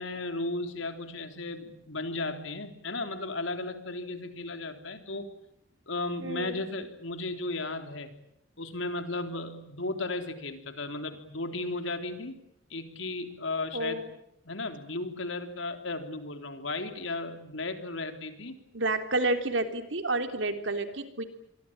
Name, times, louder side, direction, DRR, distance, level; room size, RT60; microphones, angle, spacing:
voice 1, 0.0-5.3 5.9-8.1 8.6-12.4 12.7-14.0 14.5-18.6, left 2 dB, 85° left, 7 dB, 3.6 m, -35 dB
voice 2, 6.2-6.6 13.7-14.1 18.7-21.2, right 2 dB, 80° right, 7 dB, 3.3 m, -30 dB
28.0 x 23.5 x 8.9 m, 0.75 s
head